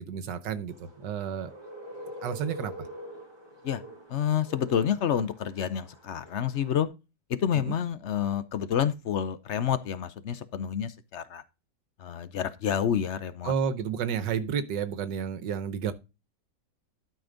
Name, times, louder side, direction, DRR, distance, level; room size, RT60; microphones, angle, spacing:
voice 1, 0.0-1.5 2.2-2.7 7.5-7.7 13.4-15.9, right 7 dB, 75° right, 1.5 m, -31 dB
sound 1, 0.7-6.8, equal, 15° right, 2.4 m, -45 dB
voice 2, 4.1-6.9 7.3-11.4 12.0-13.6, left 9 dB, 65° left, 0.7 m, -28 dB
12.5 x 5.3 x 3.8 m
omnidirectional pair, 1.9 m